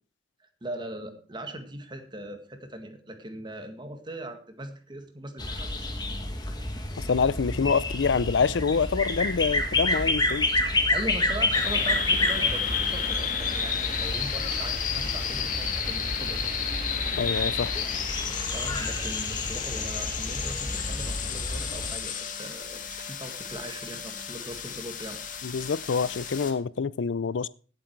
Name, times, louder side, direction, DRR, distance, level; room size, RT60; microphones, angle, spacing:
voice 1, 0.6-5.8 10.9-16.6 18.5-25.2, right 1 dB, 25° right, 7 dB, 1.8 m, -40 dB
sound 1, 5.4-21.9, left 2 dB, 25° left, 1.8 m, -30 dB
voice 2, 7.1-10.5 17.1-17.7 25.4-27.5, left 5 dB, 90° left, 20 dB, 0.5 m, -26 dB
sound 2, 11.5-26.5, left 7 dB, 45° left, 1.8 m, -32 dB
17.0 x 7.7 x 4.6 m, 0.41 s
head